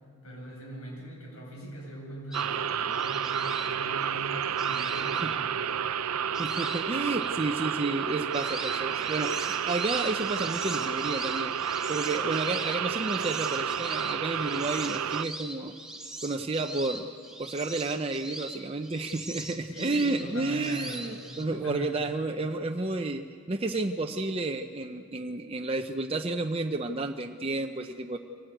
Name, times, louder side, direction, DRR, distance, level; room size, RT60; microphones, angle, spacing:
voice 1, 0.2-5.7 19.7-21.2 21.5-22.1, equal, 80° left, -1 dB, 7.9 m, -41 dB
sound 1, 2.3-5.8 6.3-7.4 7.9-21.4, right 1 dB, 5° right, 1.6 m, -41 dB
sound 2, 2.3-15.2, right 8 dB, 90° right, 0.6 m, -31 dB
voice 2, 6.4-15.7 16.2-17.1 17.4-28.2, right 3 dB, 25° right, 4 dB, 0.7 m, -31 dB
24.0 x 17.5 x 9.1 m, 2.2 s
head